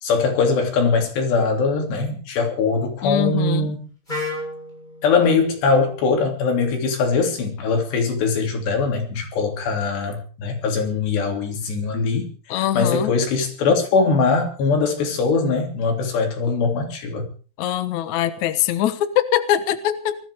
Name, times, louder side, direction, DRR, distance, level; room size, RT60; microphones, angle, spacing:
voice 1, 0.0-3.9 5.0-17.3, left 4 dB, 85° left, 5.4 m, -21 dB
voice 2, 3.0-3.7 12.5-13.1 17.6-20.2, left 12 dB, 65° left, 2.0 m, -22 dB
Wind instrument woodwind instrument, 4.1-8.0, left 2 dB, 10° left, 8.0 m, -36 dB
20.0 x 14.0 x 4.9 m
omnidirectional pair, 4.7 m